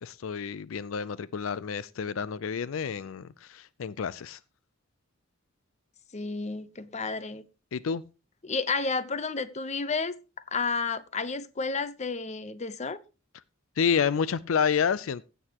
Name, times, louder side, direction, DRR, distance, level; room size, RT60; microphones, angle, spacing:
voice 1, 0.0-4.4 7.7-8.0 13.8-15.2, left 6 dB, 75° left, 0.4 m, -29 dB
voice 2, 6.1-7.4 8.4-10.1 10.5-13.0, left 4 dB, 35° left, 0.8 m, -31 dB
16.0 x 8.0 x 2.9 m
head